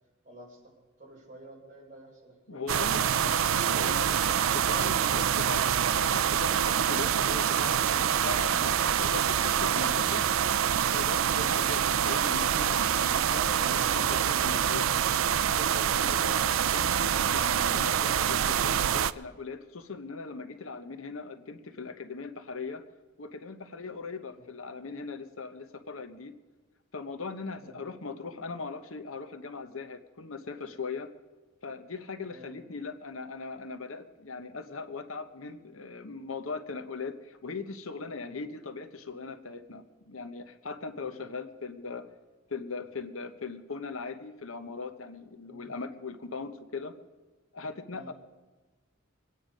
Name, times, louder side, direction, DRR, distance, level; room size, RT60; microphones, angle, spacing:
voice 1, 0.2-0.7 1.0-2.7 15.9-16.2 27.6-27.8 32.3-32.5 38.2-38.4 40.9-41.2 45.5-45.7 47.9-48.1, right 1 dB, 35° right, -2 dB, 4.5 m, -51 dB
voice 2, 2.5-10.2 10.8-14.9 15.5-22.8 23.2-26.3 26.9-31.1 31.6-42.1 42.5-47.0 47.5-48.1, left 4 dB, 75° left, 9 dB, 1.1 m, -39 dB
sound 1, 2.7-19.1, right 9 dB, 75° right, 0.4 m, -26 dB
23.5 x 9.4 x 5.2 m, 1.3 s
head